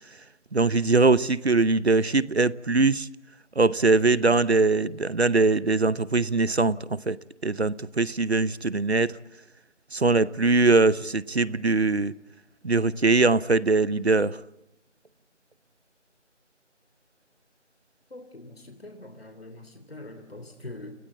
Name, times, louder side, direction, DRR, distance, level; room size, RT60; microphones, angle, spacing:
voice 1, 0.5-3.1 3.6-7.2 7.4-9.2 9.9-12.1 12.6-14.4, right 3 dB, 60° right, 0.9 m, -22 dB
voice 2, 18.1-20.9, left 2 dB, 55° left, 3.1 m, -43 dB
29.5 x 18.0 x 8.6 m
figure-of-eight pair, 170°, 36 cm